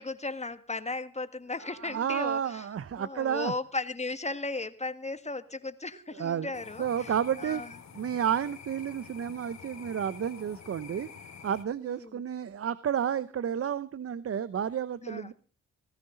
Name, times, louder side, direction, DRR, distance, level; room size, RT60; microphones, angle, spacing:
voice 1, 0.0-2.6 3.0-7.1 7.4-7.7 12.0-12.2 15.0-15.3, left 3 dB, 25° left, 12 dB, 1.7 m, -36 dB
voice 2, 1.6-3.5 6.1-6.5 6.8-7.6 7.9-11.1 11.4-15.3, right 8 dB, 50° right, 16 dB, 0.8 m, -31 dB
sound 1, 6.5-11.6, left 6 dB, 70° left, 2.4 m, -48 dB
18.0 x 15.0 x 3.9 m, 0.36 s
supercardioid pair, 50°, 29 cm